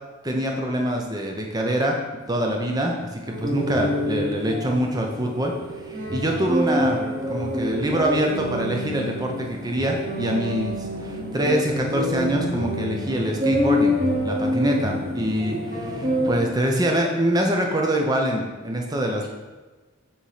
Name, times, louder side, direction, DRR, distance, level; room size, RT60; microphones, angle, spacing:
voice 1, 0.2-2.0 2.3-7.0 7.3-19.3, right 1 dB, 20° right, 1 dB, 0.8 m, -25 dB
sound 1, 3.3-16.4, left 1 dB, 40° right, 2.0 m, -27 dB
7.1 x 3.2 x 5.6 m, 1.3 s
head